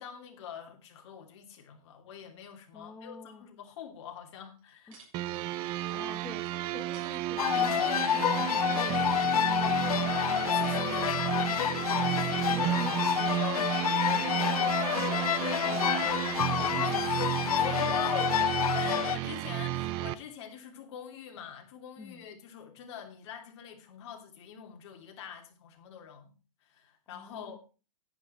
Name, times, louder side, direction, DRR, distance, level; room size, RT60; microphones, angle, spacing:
voice 1, 0.0-5.0 9.6-10.1 10.4-12.2 15.6-15.9 16.3-18.4 18.7-26.3 26.6-27.6, left 8 dB, 50° left, 3 dB, 3.1 m, -46 dB
voice 2, 2.7-3.4 4.9-5.0 5.9-10.3 10.7-10.9 12.5-17.0 22.0-22.3 27.1-27.6, left 3 dB, 10° left, 3 dB, 1.0 m, -48 dB
sound 1, 4.5-5.2 5.5-8.3 9.1-9.8 10.5-11.6 12.4-14.0 14.3-14.4, right 3 dB, 60° right, 7.0 m, -61 dB
sound 2, 5.1-20.1, right 14 dB, 25° right, 0.6 m, -32 dB
sound 3, 7.4-19.2, left 10 dB, 80° left, 0.6 m, -28 dB
10.5 x 10.5 x 4.4 m, 0.33 s
hypercardioid pair, 150°, 18 cm